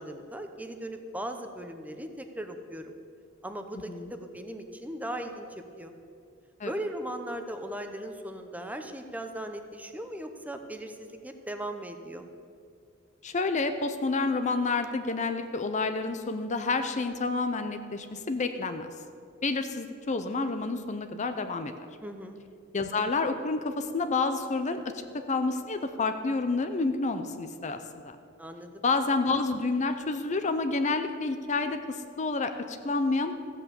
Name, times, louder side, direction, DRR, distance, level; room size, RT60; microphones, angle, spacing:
voice 1, 0.0-2.9 3.4-5.9 6.6-12.3 22.0-22.4 28.4-28.8, right 1 dB, 10° right, 6 dB, 0.8 m, -38 dB
voice 2, 13.2-18.9 19.4-21.7 22.7-25.0 25.3-27.8 28.0-28.2 28.8-33.3, left 3 dB, 35° left, 8 dB, 0.6 m, -29 dB
15.0 x 8.3 x 7.0 m, 2.4 s
head